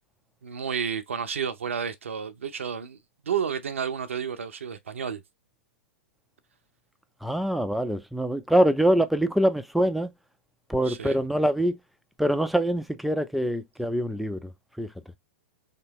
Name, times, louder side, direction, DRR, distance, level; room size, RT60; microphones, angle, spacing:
voice 1, 0.4-3.0 3.2-5.2 10.8-11.2, right 7 dB, 75° right, 0.6 m, -31 dB
voice 2, 7.2-10.1 10.7-11.8 12.2-14.5 14.8-14.9, right 1 dB, ahead, 0.4 m, -24 dB
3.3 x 3.0 x 2.8 m
figure-of-eight pair, 105°, 7 cm